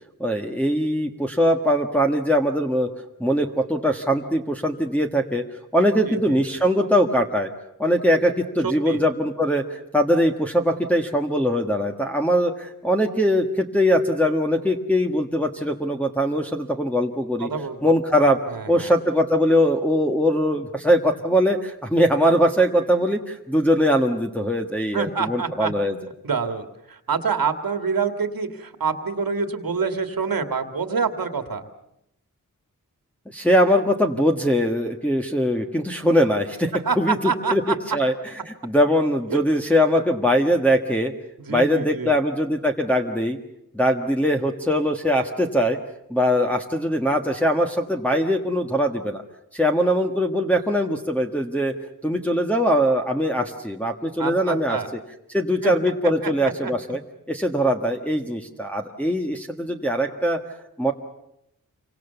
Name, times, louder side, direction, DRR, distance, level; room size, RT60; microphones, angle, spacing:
voice 1, 0.2-2.9 3.2-5.4 5.7-7.5 7.8-17.5 17.8-18.4 18.7-26.0 33.3-38.1 38.5-41.1 41.5-43.4 43.7-45.8 46.1-49.2 49.5-51.7 52.0-54.8 55.3-57.0 57.3-60.4 60.8-60.9, equal, 5° left, 0 dB, 1.5 m, -21 dB
voice 2, 6.1-6.6 8.6-9.0 17.4-17.9 18.5-18.9 24.9-25.7 26.2-31.7 36.7-37.8 39.3-39.4 41.4-42.1 54.2-54.9 55.6-55.7 56.2-56.7, right 5 dB, 85° right, 8 dB, 2.2 m, -27 dB
28.0 x 24.5 x 7.0 m, 0.81 s
wide cardioid pair, 95°, 34 cm